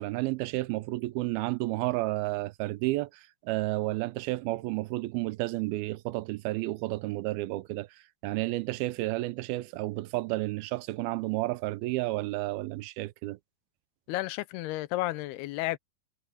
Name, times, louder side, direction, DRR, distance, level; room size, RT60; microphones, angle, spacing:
voice 1, 0.0-13.4, right 19 dB, 85° right, 2.4 m, -31 dB
voice 2, 14.1-15.8, left 18 dB, 90° left, 2.7 m, -32 dB
omnidirectional pair, 4.5 m